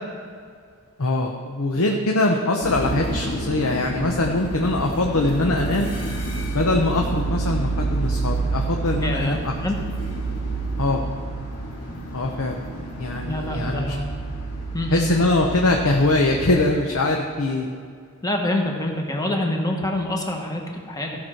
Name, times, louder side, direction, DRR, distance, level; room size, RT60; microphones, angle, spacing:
voice 1, 1.0-5.9 6.5-9.5 10.8-11.0 12.1-12.6 13.0-14.0 14.9-17.7, left 2 dB, 70° left, 1 dB, 0.8 m, -22 dB
sound 1, 2.6-16.7, right 2 dB, 85° left, 2.2 m, -29 dB
voice 2, 9.0-9.8 13.2-14.1 14.7-15.1 18.2-21.2, left 1 dB, 15° left, 1 dB, 1.2 m, -26 dB
15.0 x 6.1 x 4.5 m, 2.1 s
head